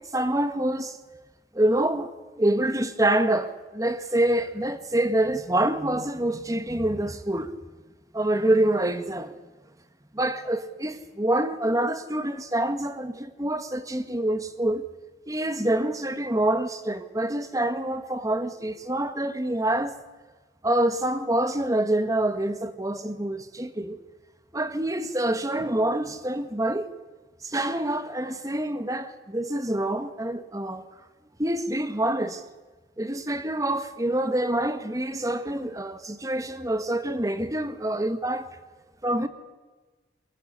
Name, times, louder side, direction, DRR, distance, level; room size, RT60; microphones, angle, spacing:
voice 1, 0.1-1.0 1.5-2.1 2.4-7.5 8.1-9.3 10.1-14.8 15.3-20.0 20.6-24.0 24.5-26.9 27.4-30.8 31.4-32.4 33.0-38.5 39.0-39.3, right 1 dB, 20° right, 1.6 m, -26 dB
23.0 x 22.0 x 9.8 m
head